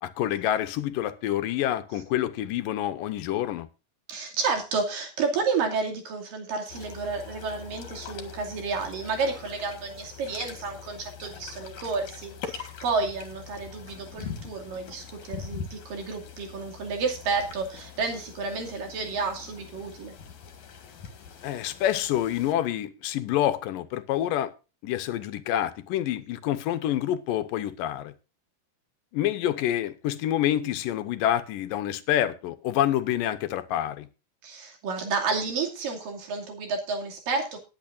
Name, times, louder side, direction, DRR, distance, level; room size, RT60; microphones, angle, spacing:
voice 1, 0.0-3.7 21.4-24.5 24.8-28.1 29.1-34.1, left 12 dB, 80° left, 2.5 m, -27 dB
voice 2, 4.1-20.1 34.4-37.6, right 4 dB, 70° right, 4.2 m, -31 dB
sound 1, 6.7-22.5, left 7 dB, 60° left, 3.0 m, -43 dB
19.5 x 8.7 x 2.6 m
omnidirectional pair, 4.0 m